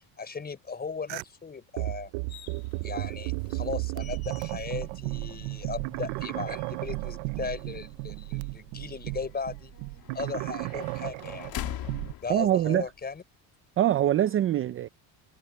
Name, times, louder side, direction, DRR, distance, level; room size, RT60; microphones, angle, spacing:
voice 1, 0.2-2.1 2.8-9.7 10.1-11.5 12.2-13.2, left 5 dB, 20° left, 5.6 m, -37 dB
sound 1, 1.1-1.2 1.8-12.1, right 26 dB, 85° right, 0.6 m, -34 dB
sound 2, 2.3-13.2, left 13 dB, 50° left, 2.2 m, -45 dB
voice 2, 12.3-12.8 13.8-14.9, right 12 dB, 30° right, 0.5 m, -23 dB
cardioid pair, 145°, 46 cm